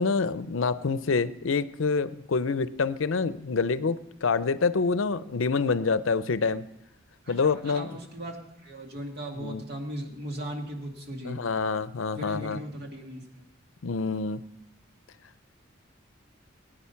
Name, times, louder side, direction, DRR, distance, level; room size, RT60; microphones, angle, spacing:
voice 1, 0.0-6.6 7.3-7.9 9.4-9.6 11.2-12.6 13.8-14.4, left 4 dB, 75° left, 14 dB, 0.6 m, -27 dB
voice 2, 7.2-11.4 12.2-13.5, right 1 dB, 55° right, 2 dB, 2.1 m, -38 dB
20.5 x 9.0 x 5.7 m, 0.88 s
head